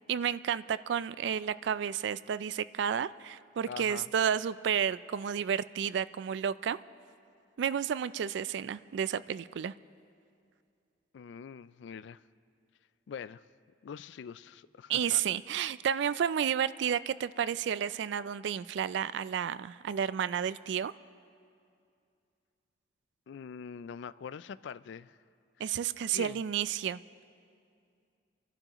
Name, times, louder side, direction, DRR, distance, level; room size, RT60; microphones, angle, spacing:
voice 1, 0.1-6.8 7.6-9.7 14.9-20.9 25.6-27.0, right 8 dB, 65° right, 0.3 m, -31 dB
voice 2, 3.7-4.1 11.1-12.2 13.1-13.4 13.8-15.2 23.3-25.2 26.1-26.4, left 7 dB, 65° left, 0.3 m, -44 dB
28.5 x 11.5 x 3.0 m
head